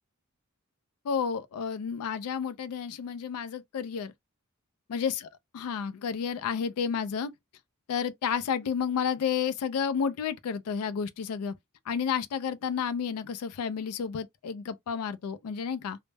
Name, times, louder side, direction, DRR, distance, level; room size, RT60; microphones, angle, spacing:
voice 1, 1.0-4.1 4.9-5.3 5.5-7.3 7.9-11.5 11.9-16.0, left 7 dB, 75° left, 0.3 m, -31 dB
2.1 x 2.0 x 3.2 m
head